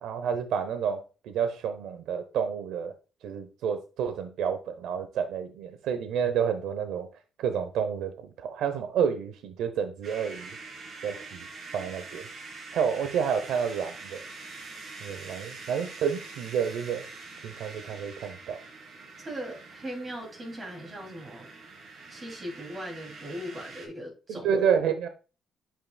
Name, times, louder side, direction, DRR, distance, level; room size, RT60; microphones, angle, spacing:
voice 1, 0.0-2.9 3.2-7.1 7.4-10.6 11.0-11.5 11.7-12.3 12.7-14.2 15.0-17.0 17.4-18.6 24.3-25.1, right 7 dB, 85° right, 9 dB, 0.7 m, -29 dB
sound 1, 10.0-23.9, right 3 dB, 60° right, 2.9 m, -45 dB
voice 2, 19.2-21.5 22.1-24.5, equal, 35° right, 1 dB, 2.6 m, -39 dB
8.6 x 5.5 x 2.2 m, 0.34 s
cardioid pair, 90°, 0 cm